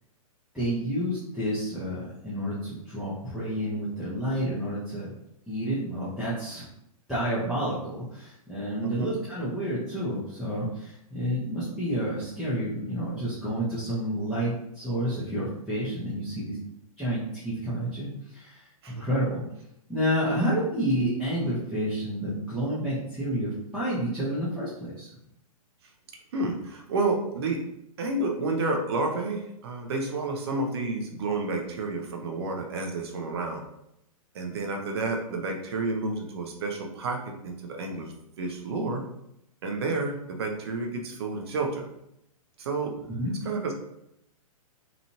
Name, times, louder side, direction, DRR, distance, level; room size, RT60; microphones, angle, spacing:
voice 1, 0.5-5.1 5.5-6.7 7.1-16.6 17.0-19.4 19.9-25.1 43.2-43.3, equal, ahead, -12 dB, 0.6 m, -30 dB
voice 2, 8.8-9.2 18.8-19.0 20.4-20.5 26.3-27.6 28.0-33.6 34.3-39.0 39.6-41.8 42.6-42.9 43.4-43.7, right 3 dB, 45° right, 2 dB, 0.6 m, -30 dB
2.9 x 2.5 x 2.8 m, 0.79 s
figure-of-eight pair, 115°, 19 cm